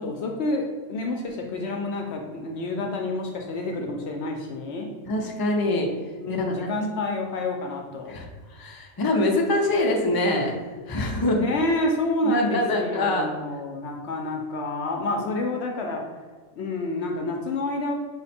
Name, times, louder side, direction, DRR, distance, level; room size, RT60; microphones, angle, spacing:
voice 1, 0.0-4.9 6.2-8.2 11.3-16.0 16.6-17.9, left 2 dB, 65° left, 2 dB, 0.8 m, -28 dB
voice 2, 5.1-5.9 8.1-8.3 8.5-10.5 10.9-11.4 12.2-13.3, left 1 dB, 35° left, 1 dB, 0.4 m, -24 dB
5.6 x 2.2 x 4.1 m, 1.4 s
omnidirectional pair, 1.3 m